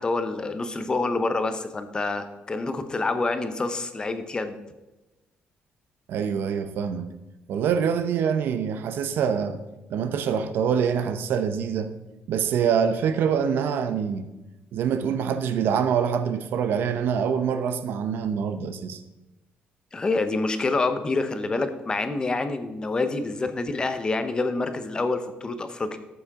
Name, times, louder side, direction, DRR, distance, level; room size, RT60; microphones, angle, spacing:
voice 1, 0.0-4.6 19.9-26.0, left 3 dB, 25° left, 0.7 m, -27 dB
voice 2, 6.1-7.1 7.5-9.6 9.9-11.9 12.3-14.3 14.7-19.0, right 7 dB, 70° right, 0.7 m, -25 dB
13.5 x 7.1 x 3.7 m
cardioid pair, 145°, 4 cm